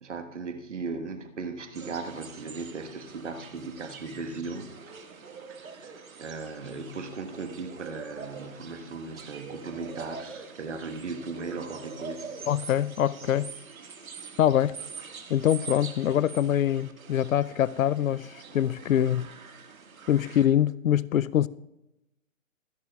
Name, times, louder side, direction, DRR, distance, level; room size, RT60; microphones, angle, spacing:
voice 1, 0.0-5.0 5.5-12.4, right 4 dB, 60° right, 1.4 m, -37 dB
sound 1, 1.7-20.5, right 5 dB, 90° right, 1.8 m, -44 dB
voice 2, 12.5-13.5 14.4-14.7 15.3-18.3 18.5-19.3 20.1-21.5, left 11 dB, 75° left, 0.5 m, -24 dB
24.0 x 11.0 x 2.3 m
hypercardioid pair, 175°, 40 cm